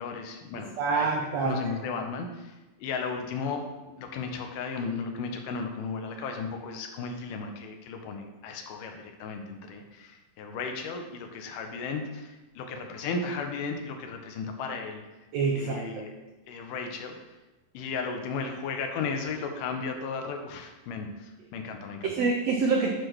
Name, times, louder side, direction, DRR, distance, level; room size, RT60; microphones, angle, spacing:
voice 1, 0.0-1.1 1.4-15.0 15.5-16.2 16.5-17.2 17.7-22.2, left 4 dB, 75° left, 4 dB, 2.3 m, -35 dB
voice 2, 0.8-1.6 15.3-15.8 22.0-22.9, right 4 dB, 85° right, 1 dB, 1.4 m, -26 dB
9.6 x 3.3 x 6.1 m, 1.1 s
omnidirectional pair, 3.9 m